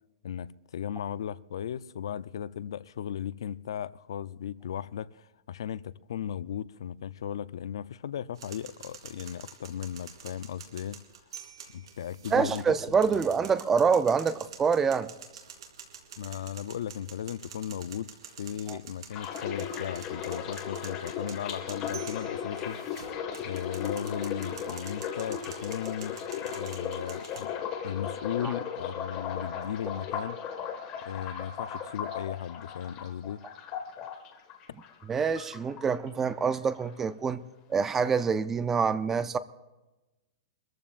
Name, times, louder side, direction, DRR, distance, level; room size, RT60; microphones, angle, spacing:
voice 1, 0.2-11.0 11.7-12.6 16.2-18.1 18.4-23.0 23.4-27.5 27.8-30.4 31.1-33.4, left 9 dB, 80° left, 0.6 m, -36 dB
sound 1, 8.4-27.4, right 7 dB, 80° right, 3.2 m, -48 dB
voice 2, 12.3-15.1 18.7-18.8 28.4-28.5 35.1-37.4 37.7-39.4, right 6 dB, 10° right, 0.5 m, -26 dB
sound 2, 19.1-35.1 35.4-36.3 36.5-36.9, left 8 dB, 25° left, 1.7 m, -36 dB
24.5 x 14.5 x 2.5 m
supercardioid pair, 165°, 3 cm